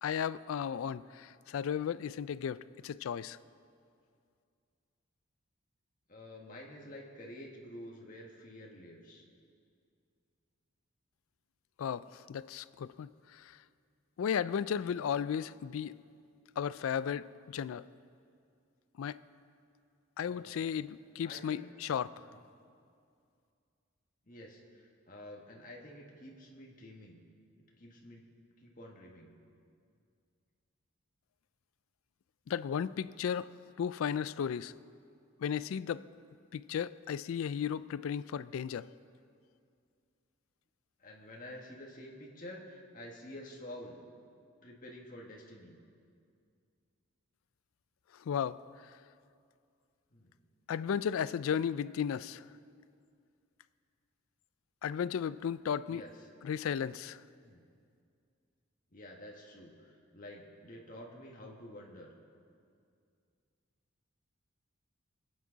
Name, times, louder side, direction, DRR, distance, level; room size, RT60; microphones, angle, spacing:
voice 1, 0.0-3.4 11.8-13.6 14.2-16.0 16.6-17.8 19.0-19.2 20.2-22.3 32.5-33.5 33.8-34.7 35.4-36.0 36.5-38.9 48.2-48.9 50.7-52.5 54.8-56.0 56.4-57.2, left 8 dB, 75° left, 17 dB, 0.3 m, -35 dB
voice 2, 6.1-9.2 20.3-20.7 21.2-21.7 22.2-22.4 24.3-27.2 27.8-28.3 28.6-29.3 41.0-44.0 44.6-45.8 50.1-50.3 55.9-56.1 57.4-57.6 58.9-62.1, left 1 dB, 40° left, -1 dB, 1.7 m, -49 dB
25.0 x 8.6 x 4.0 m, 2.3 s
head